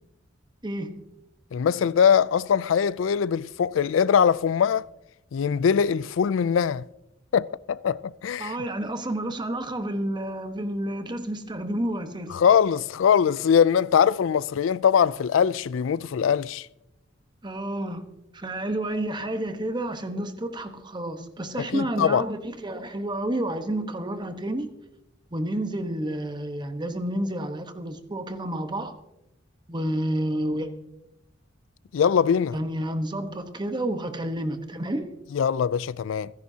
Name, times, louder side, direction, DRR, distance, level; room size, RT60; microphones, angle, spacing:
voice 1, 0.6-1.0 8.4-12.4 17.4-24.7 25.3-28.9 29.7-30.7 32.5-35.1, right 1 dB, 25° right, 1.1 m, -30 dB
voice 2, 1.5-4.9 5.3-6.8 7.3-8.6 12.3-16.7 21.6-22.2 31.9-32.5 35.3-36.3, left 7 dB, 80° left, 0.4 m, -22 dB
27.0 x 10.5 x 2.8 m
head